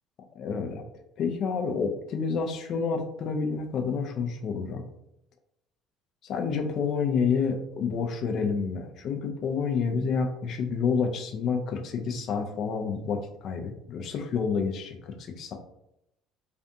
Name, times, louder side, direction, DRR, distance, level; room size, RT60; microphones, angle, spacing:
voice 1, 0.4-0.8 1.2-4.8 6.2-15.5, left 5 dB, 55° left, 4 dB, 0.4 m, -29 dB
2.5 x 2.3 x 2.6 m, 0.81 s
hypercardioid pair, 60°, 0 cm